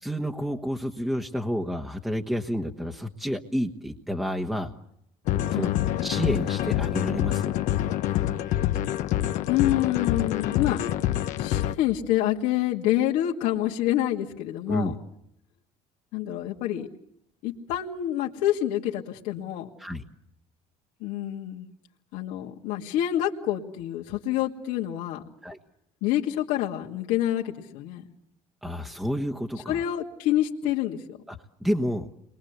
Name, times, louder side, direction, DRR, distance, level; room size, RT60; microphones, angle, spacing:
voice 1, 0.0-4.7 5.5-5.7 6.0-7.5 14.7-14.9 19.8-20.0 25.4-25.6 28.6-29.8 31.3-32.1, equal, ahead, 3 dB, 1.3 m, -29 dB
sound 1, 5.3-11.7, left 13 dB, 70° left, 1.3 m, -26 dB
voice 2, 9.5-10.8 11.4-15.0 16.1-16.9 17.4-19.7 21.0-21.7 22.1-25.2 26.0-28.0 29.7-31.2, left 12 dB, 85° left, -1 dB, 2.3 m, -27 dB
29.5 x 22.5 x 8.2 m, 0.78 s
cardioid pair, 130°, 13 cm